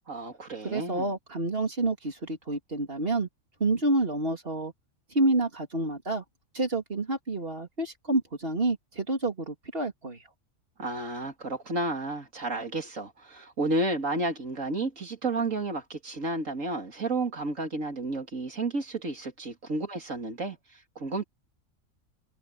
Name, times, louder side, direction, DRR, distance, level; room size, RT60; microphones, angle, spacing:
voice 1, 0.1-1.1 10.8-21.2, right 2 dB, 65° right, 3.2 m, -32 dB
voice 2, 0.7-3.3 3.6-4.7 5.1-6.2 6.5-10.2, right 2 dB, 40° right, 3.3 m, -28 dB
omnidirectional pair, 1.5 m